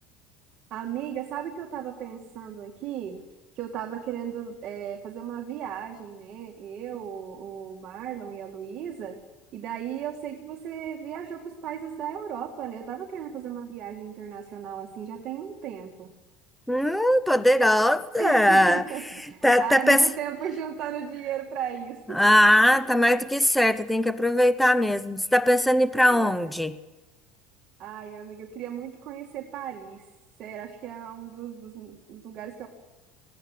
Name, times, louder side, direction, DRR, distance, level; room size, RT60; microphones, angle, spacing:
voice 1, 0.7-3.2 3.5-9.2 9.5-16.1 18.2-22.2 22.7-23.0 26.0-26.6 27.8-30.0 30.4-32.7, right 9 dB, 40° right, 2.3 m, -36 dB
voice 2, 16.7-18.8 19.4-20.1 22.1-26.7, left 1 dB, ahead, 0.7 m, -20 dB
20.0 x 16.0 x 9.5 m
cardioid pair, 150°, 2 cm